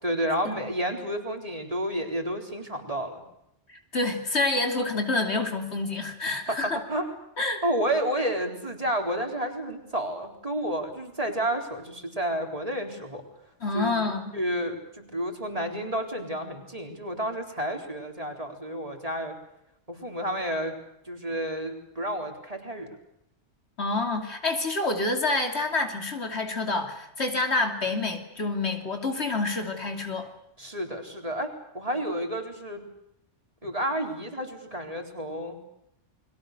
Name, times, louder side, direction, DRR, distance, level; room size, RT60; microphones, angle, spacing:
voice 1, 0.0-3.2 6.5-7.1 7.6-13.2 13.7-14.0 14.3-19.3 19.9-20.7 21.1-22.9 30.6-32.9 33.6-35.6, right 1 dB, 30° right, 3 dB, 4.2 m, -30 dB
voice 2, 3.7-6.8 7.4-7.6 13.6-14.3 23.8-30.3, left 3 dB, 65° left, 5 dB, 3.2 m, -28 dB
30.0 x 22.5 x 6.8 m, 0.81 s
omnidirectional pair, 1.2 m